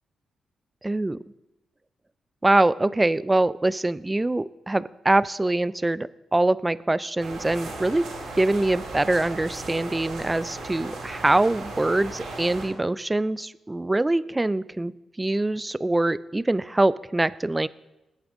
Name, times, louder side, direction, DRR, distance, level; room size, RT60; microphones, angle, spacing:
voice 1, 0.8-1.2 2.4-8.1 8.4-14.9 15.2-17.7, right 2 dB, 15° right, 18 dB, 0.4 m, -24 dB
sound 1, 7.2-12.7, right 2 dB, 90° right, 5.2 m, -36 dB
20.0 x 8.8 x 3.8 m, 1.0 s
cardioid pair, 90°, 0 cm